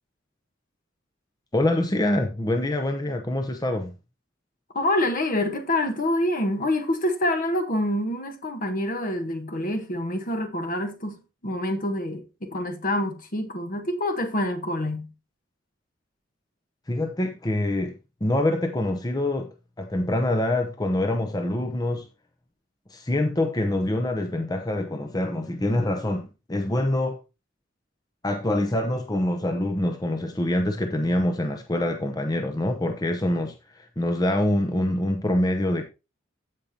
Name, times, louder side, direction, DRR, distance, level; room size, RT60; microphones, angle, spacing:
voice 1, 1.5-3.9 16.9-18.0 18.2-19.5 19.8-22.1 22.9-27.2 28.2-35.9, left 1 dB, 20° left, 0.8 m, -25 dB
voice 2, 4.7-15.1, left 1 dB, 45° left, 1.3 m, -26 dB
15.0 x 5.1 x 2.9 m
head